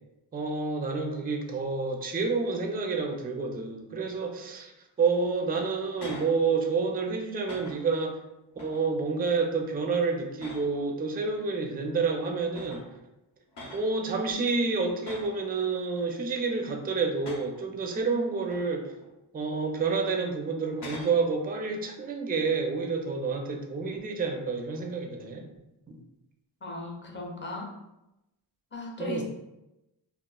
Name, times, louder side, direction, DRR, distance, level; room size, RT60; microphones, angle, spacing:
voice 1, 0.3-4.7 5.0-8.2 8.6-12.8 13.7-18.8 19.3-25.4 25.9-26.0 29.0-29.2, right 4 dB, 20° right, 3 dB, 0.3 m, -29 dB
sound 1, 5.7-6.4 6.8-7.1 7.4-8.0 8.6-9.0 9.4-9.7 10.4-11.0 11.9-12.0 12.5-13.0 13.5-14.0 15.0-15.5 15.9-16.5 17.1-17.6 18.3-19.1 19.5-19.7 20.5-21.2 24.7-25.1, left 1 dB, 55° left, 0.7 m, -45 dB
voice 2, 26.6-27.7 28.7-29.2, left 2 dB, 25° left, 0 dB, 0.6 m, -36 dB
2.9 x 2.1 x 2.2 m, 0.91 s
cardioid pair, 55°, 47 cm